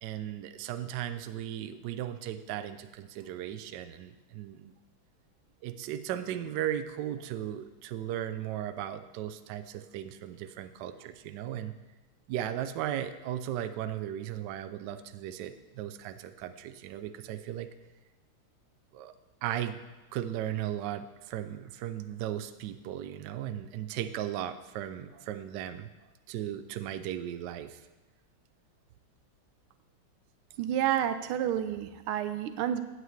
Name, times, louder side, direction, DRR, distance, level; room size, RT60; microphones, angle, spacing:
voice 1, 0.0-4.7 5.6-11.7 12.3-17.7 18.9-19.1 19.4-19.8 20.1-25.9 26.3-27.8, right 11 dB, 70° right, 10 dB, 1.1 m, -36 dB
voice 2, 30.6-32.8, right 10 dB, 85° right, 10 dB, 1.5 m, -29 dB
15.5 x 8.2 x 3.2 m, 1.2 s
omnidirectional pair, 2.3 m